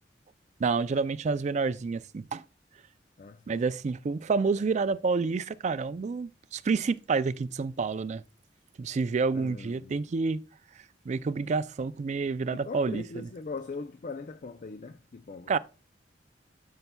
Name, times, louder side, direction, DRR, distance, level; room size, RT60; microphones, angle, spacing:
voice 1, 0.6-2.4 3.5-8.2 8.8-10.4 11.1-13.3 15.5-15.6, right 4 dB, 40° right, 0.4 m, -29 dB
voice 2, 3.2-3.6 9.3-10.0 12.7-15.5, left 4 dB, 45° left, 0.4 m, -40 dB
12.0 x 5.6 x 2.3 m
head